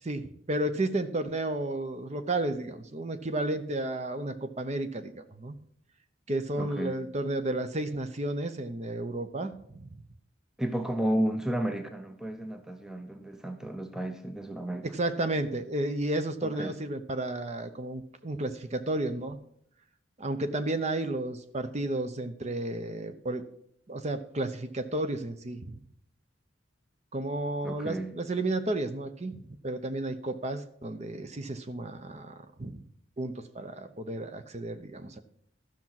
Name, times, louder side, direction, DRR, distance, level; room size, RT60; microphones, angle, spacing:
voice 1, 0.0-5.6 6.3-9.9 14.9-19.4 20.2-23.4 23.9-25.8 27.1-32.8 33.2-35.2, right 2 dB, 35° right, 0.8 m, -32 dB
voice 2, 6.6-7.0 10.6-14.9 16.4-16.7 27.6-28.1, right 1 dB, 5° right, 0.6 m, -32 dB
13.0 x 6.0 x 5.8 m
head